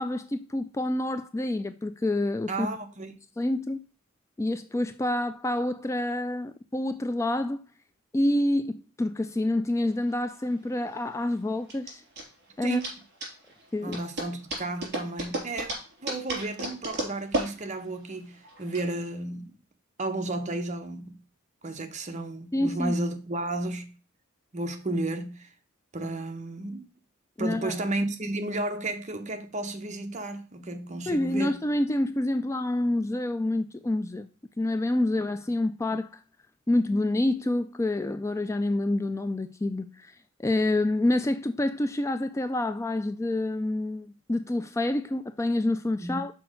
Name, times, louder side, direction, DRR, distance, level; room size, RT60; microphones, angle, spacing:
voice 1, 0.0-2.7 3.4-3.9 4.4-7.6 8.1-12.0 12.6-12.8 13.7-14.0 22.5-22.9 27.4-27.7 31.1-34.3 34.6-36.2 36.7-40.1 40.4-46.3, left 1 dB, 15° left, 0.3 m, -27 dB
voice 2, 2.5-3.1 12.6-12.9 13.8-15.7 16.0-19.6 20.0-21.2 21.6-23.9 24.5-25.5 25.9-26.9 27.4-31.6 46.0-46.2, right 2 dB, 35° right, 1.0 m, -33 dB
sound 1, 9.9-18.8, right 1 dB, 55° right, 3.8 m, -35 dB
6.0 x 4.5 x 6.3 m
head